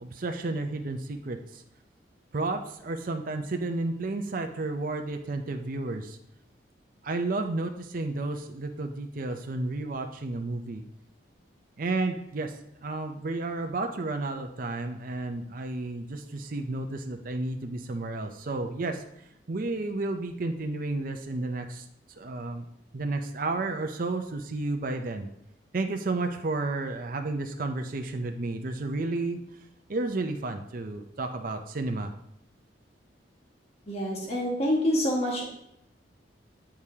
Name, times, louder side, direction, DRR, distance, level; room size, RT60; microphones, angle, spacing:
voice 1, 0.0-1.6 2.3-6.2 7.0-10.8 11.8-12.5 12.8-19.0 19.5-21.8 22.2-22.6 22.9-25.3 25.7-29.4 29.9-32.1, right 2 dB, 50° right, 5 dB, 0.5 m, -32 dB
voice 2, 33.9-35.4, equal, 35° left, -3 dB, 1.5 m, -26 dB
8.8 x 4.8 x 2.8 m, 0.78 s
head